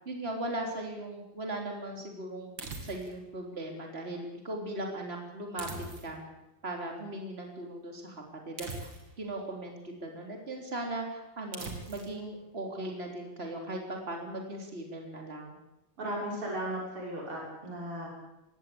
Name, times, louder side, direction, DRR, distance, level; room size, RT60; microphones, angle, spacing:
voice 1, 0.1-2.5 2.9-5.7 6.0-6.2 6.6-8.9 9.2-15.5, right 1 dB, 25° right, 2 dB, 3.8 m, -38 dB
sound 1, 2.6-3.3 5.6-6.3 8.6-9.3 11.5-12.2, right 3 dB, 60° right, 3.5 m, -41 dB
voice 2, 16.0-18.1, right 1 dB, 90° right, -3 dB, 7.2 m, -36 dB
21.0 x 17.0 x 8.6 m, 0.93 s
omnidirectional pair, 2.4 m